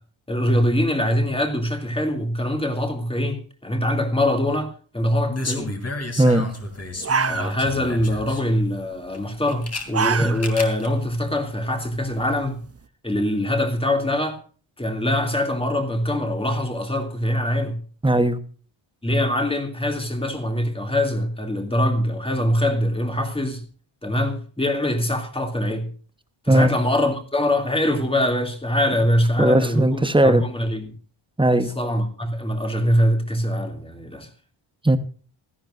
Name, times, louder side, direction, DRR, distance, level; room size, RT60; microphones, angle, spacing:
voice 1, 0.3-5.7 7.3-12.6 13.0-14.4 14.8-17.8 19.0-23.6 24.0-25.9 26.4-30.9 31.8-34.3, left 1 dB, 10° left, 2.5 m, -23 dB
sound 1, 5.3-8.4 9.1-9.8 10.3-10.9 11.1-11.2, left 2 dB, 30° left, 2.9 m, -31 dB
sound 2, 6.6-6.7 7.0-7.9 8.2-8.6 9.6-10.7 11.1-11.2 11.7-12.7, right 5 dB, 30° right, 0.6 m, -26 dB
voice 2, 18.0-18.4 26.5-26.7 29.4-30.4 31.4-31.7 34.8-35.0, right 1 dB, 10° right, 1.0 m, -17 dB
17.0 x 14.0 x 2.5 m
wide cardioid pair, 135°, 49 cm